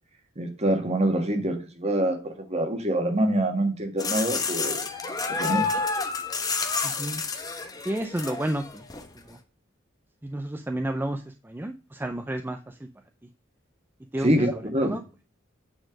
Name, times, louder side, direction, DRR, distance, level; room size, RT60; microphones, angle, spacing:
voice 1, 0.4-4.8 5.3-5.7 14.2-15.0, right 1 dB, 35° right, 5 dB, 1.6 m, -25 dB
sound 1, 4.0-9.1, left 4 dB, 20° left, 1.0 m, -29 dB
voice 2, 6.8-7.2 7.8-8.9 9.3-9.4 10.2-12.9 14.1-14.3 14.8-15.0, right 1 dB, 10° right, 5 dB, 0.5 m, -31 dB
8.8 x 4.3 x 5.1 m, 0.34 s
head